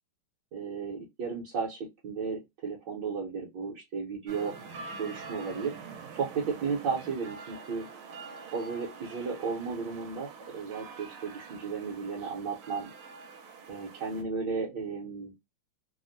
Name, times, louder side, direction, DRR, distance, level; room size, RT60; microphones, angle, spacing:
voice 1, 0.5-4.5 5.0-5.7 6.1-7.9 8.5-12.9 13.7-15.3, right 5 dB, 65° right, -4 dB, 1.3 m, -34 dB
sound 1, 4.3-14.2, right 4 dB, 80° right, 1.5 m, -46 dB
3.4 x 2.1 x 2.4 m, 0.20 s
omnidirectional pair, 2.3 m